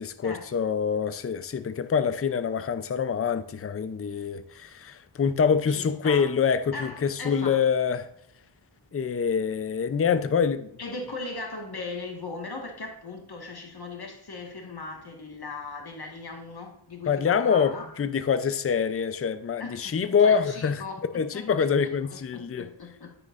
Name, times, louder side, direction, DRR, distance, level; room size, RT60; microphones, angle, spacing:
voice 1, 0.0-8.1 8.9-10.7 17.1-20.8 21.1-22.7, left 6 dB, 30° left, 0.5 m, -25 dB
voice 2, 5.7-6.3 6.7-7.7 10.8-17.9 19.6-23.2, left 3 dB, 50° left, 1.6 m, -39 dB
9.8 x 9.6 x 2.5 m
wide cardioid pair, 115°, 49 cm